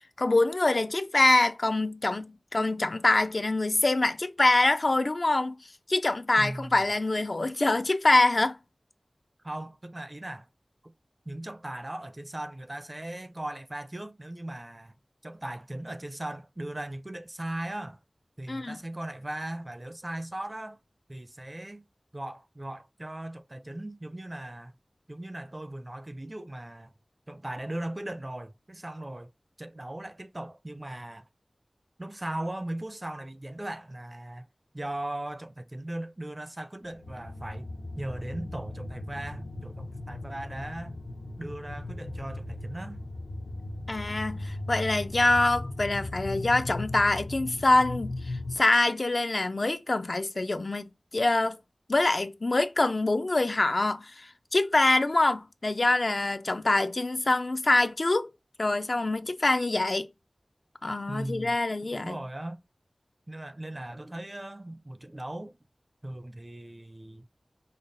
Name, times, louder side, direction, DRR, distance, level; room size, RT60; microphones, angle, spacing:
voice 1, 0.2-5.6 5.9-8.6 18.5-18.8 43.9-50.9 51.1-51.6 51.9-58.3 58.6-60.1 60.8-62.2, left 2 dB, 65° left, 0.4 m, -25 dB
voice 2, 6.4-6.8 9.4-10.5 10.8-10.9 11.3-14.9 15.2-18.0 18.4-20.8 21.1-21.8 22.1-24.7 25.1-26.9 27.3-29.3 29.6-31.2 32.0-34.5 34.7-37.7 38.0-41.0 41.4-43.0 61.1-61.6 61.8-62.6 63.3-65.6 66.0-67.2, right 1 dB, 35° right, 0.5 m, -38 dB
sound 1, 36.9-48.6, left 2 dB, 85° left, 0.8 m, -37 dB
5.3 x 2.0 x 3.9 m
wide cardioid pair, 45°, 0 cm